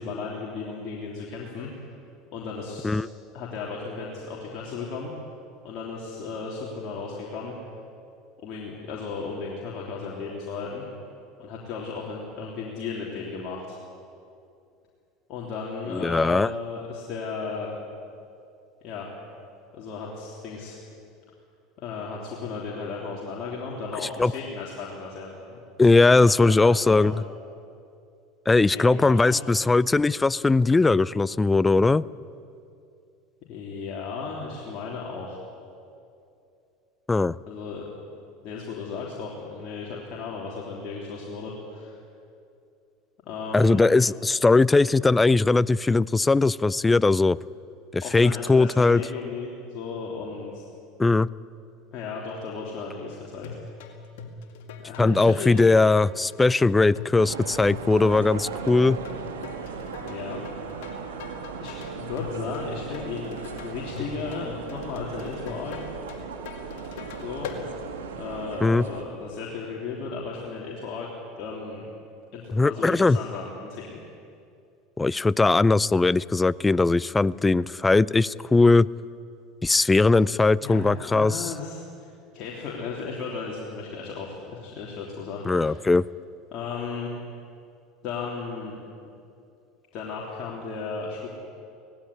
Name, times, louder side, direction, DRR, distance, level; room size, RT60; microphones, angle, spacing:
voice 1, 0.0-1.7 2.3-3.0 3.3-5.1 5.6-7.6 8.4-10.8 11.4-13.8 15.3-17.7 18.8-19.1 19.7-20.7 21.8-25.6 25.9-27.0 28.7-29.4 33.5-35.4 37.5-37.8 38.4-42.0 43.3-43.8 48.0-50.6 51.9-53.5 54.8-55.6 60.0-60.4 61.0-61.1 61.5-65.9 67.2-67.5 68.1-71.1 71.4-71.8 72.3-74.0 80.6-85.8 86.5-87.1 88.0-88.7 89.0-89.1 89.9-91.3, left 4 dB, 50° left, -3 dB, 3.4 m, -35 dB
voice 2, 15.9-16.5 24.2-24.3 25.8-27.2 28.5-32.0 37.1-37.4 43.5-47.4 47.9-49.0 51.0-51.3 55.0-59.0 68.6-68.8 72.5-73.2 75.0-78.9 79.6-81.5 85.5-86.0, left 3 dB, 15° left, 21 dB, 0.4 m, -20 dB
sound 1, 53.4-67.6, left 5 dB, 70° left, 2.2 m, -41 dB
sound 2, 57.2-69.0, right 5 dB, 85° right, 1.8 m, -37 dB
18.0 x 16.0 x 9.9 m, 2.5 s
hypercardioid pair, 85°, 0 cm